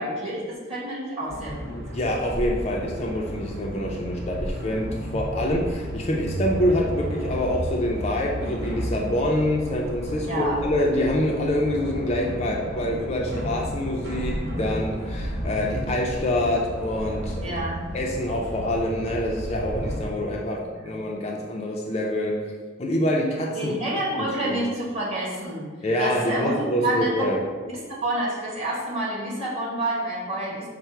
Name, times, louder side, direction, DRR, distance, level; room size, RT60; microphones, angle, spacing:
voice 1, 0.0-1.8 10.2-10.6 17.4-17.8 23.5-25.6 26.0-27.1 28.0-30.7, right 1 dB, 30° right, -7 dB, 1.5 m, -28 dB
sound 1, 1.3-20.0, equal, 50° right, 0.8 m, -32 dB
voice 2, 1.7-4.9 5.1-17.6 17.9-22.4 22.8-23.7 24.2-24.6 25.8-27.4, left 1 dB, 35° left, -1 dB, 0.4 m, -26 dB
5.5 x 2.0 x 4.4 m, 1.4 s
head